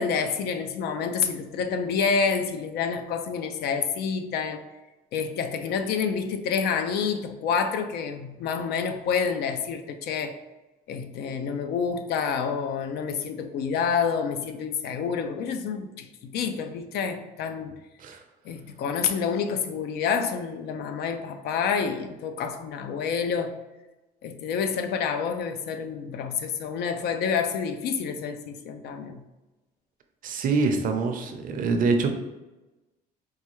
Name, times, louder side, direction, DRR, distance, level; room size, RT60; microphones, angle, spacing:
voice 1, 0.0-4.7 5.1-10.4 10.9-17.7 18.4-23.5 24.2-29.2, left 6 dB, 75° left, 6 dB, 0.5 m, -28 dB
voice 2, 30.2-32.1, right 4 dB, 55° right, 5 dB, 0.6 m, -25 dB
4.6 x 2.3 x 3.0 m, 1.1 s
cardioid pair, 110°, 17 cm